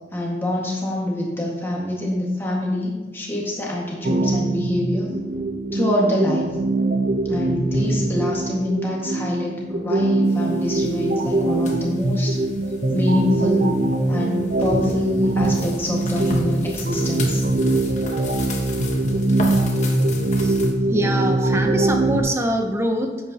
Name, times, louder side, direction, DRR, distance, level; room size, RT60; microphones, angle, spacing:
voice 1, 0.1-5.1 5.7-6.6 7.3-12.4 12.9-13.7 14.1-17.4, left 1 dB, 10° left, -3 dB, 1.8 m, -25 dB
sound 1, 4.0-22.2, right 2 dB, 55° right, 0.8 m, -22 dB
sound 2, 10.3-20.7, left 2 dB, 40° left, 1.2 m, -36 dB
voice 2, 20.9-23.3, right 1 dB, 15° right, 4 dB, 0.8 m, -24 dB
10.5 x 8.3 x 2.9 m, 1.2 s
head